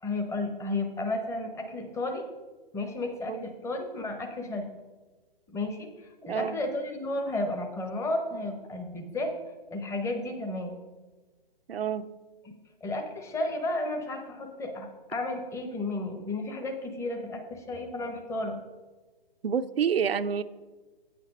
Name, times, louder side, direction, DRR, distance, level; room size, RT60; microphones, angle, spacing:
voice 1, 0.0-2.2 2.7-4.7 5.5-9.3 9.7-10.8 12.8-18.6, left 2 dB, 10° left, 5 dB, 0.8 m, -33 dB
voice 2, 11.7-12.1 19.4-20.4, right 7 dB, 85° right, 10 dB, 0.6 m, -28 dB
8.7 x 6.8 x 5.2 m, 1.3 s
hypercardioid pair, 135°, 29 cm